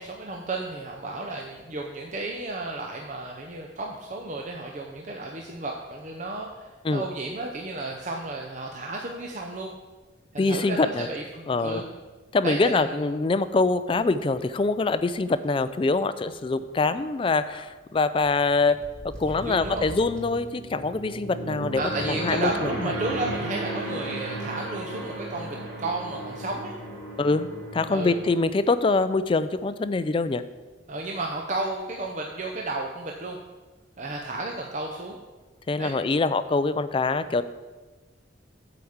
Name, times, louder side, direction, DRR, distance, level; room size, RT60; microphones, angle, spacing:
voice 1, 0.0-9.7 10.3-11.8 12.4-13.0 19.4-19.9 21.8-26.7 27.9-28.1 30.9-33.4 34.0-35.2 35.8-35.9, right 2 dB, 40° right, 1 dB, 0.7 m, -33 dB
sound 1, 10.3-10.8 11.1-11.2 18.2-28.4, right 2 dB, 80° right, 2.6 m, -35 dB
voice 2, 10.4-11.1 11.5-11.8 12.3-18.8 19.2-22.9 27.2-27.5 27.7-30.4 35.7-37.4, left 3 dB, 30° left, 13 dB, 0.3 m, -24 dB
sound 2, 13.8-14.5 14.9-15.0 15.3-15.5 16.7-17.7 18.2-20.5, equal, 5° left, 1.3 m, -46 dB
7.9 x 5.0 x 7.1 m, 1.3 s
head